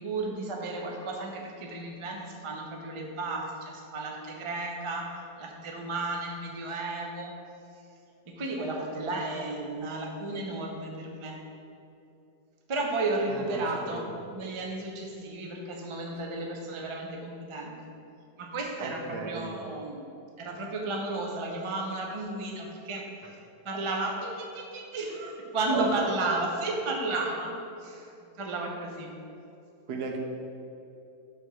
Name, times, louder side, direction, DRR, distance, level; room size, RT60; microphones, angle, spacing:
voice 1, 0.0-5.1 5.4-7.3 8.3-11.4 12.7-14.0 14.3-17.8 18.4-20.1 20.4-23.1 23.6-27.5 27.8-28.1 28.4-29.1, right 2 dB, 45° right, 0 dB, 0.3 m, -33 dB
voice 2, 13.3-13.6 13.9-14.2 18.8-19.7 25.7-25.9 29.9-30.2, right 4 dB, 75° right, 2 dB, 1.3 m, -35 dB
6.9 x 3.5 x 6.1 m, 2.7 s
omnidirectional pair, 1.8 m